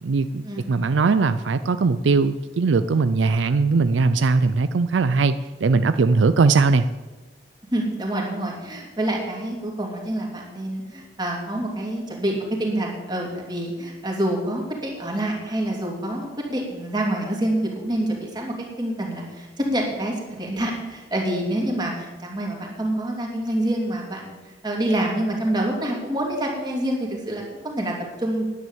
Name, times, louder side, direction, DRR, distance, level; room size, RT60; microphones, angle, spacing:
voice 1, 0.0-5.3 5.6-6.9, right 4 dB, 80° right, 12 dB, 0.5 m, -20 dB
voice 2, 7.7-24.4 24.6-28.4, right 1 dB, 25° right, -1 dB, 2.8 m, -27 dB
10.5 x 9.4 x 7.2 m, 1.2 s
head